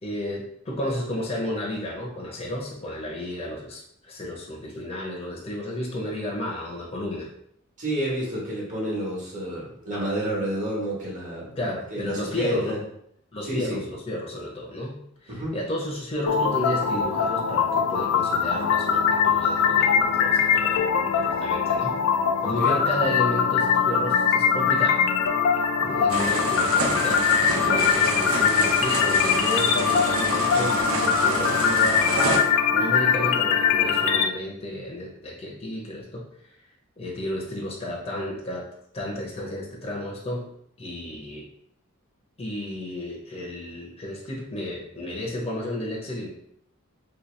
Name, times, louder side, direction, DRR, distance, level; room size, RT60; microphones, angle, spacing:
voice 1, 0.0-7.3 11.6-12.8 13.3-22.0 22.4-25.1 25.5-27.3 27.5-32.1 32.7-36.3 36.5-36.6 37.0-38.7 38.9-40.5 40.8-41.5 42.4-46.3, left 1 dB, 30° left, -2 dB, 0.6 m, -32 dB
voice 2, 7.8-11.5 11.9-12.8 13.5-13.8 15.3-15.5 22.4-22.8, right 1 dB, 40° right, -4 dB, 1.2 m, -29 dB
sound 1, 16.3-34.3, left 7 dB, 65° left, 0.3 m, -22 dB
sound 2, 26.1-32.4, right 2 dB, 80° right, 0.7 m, -28 dB
2.9 x 2.9 x 3.1 m, 0.70 s
head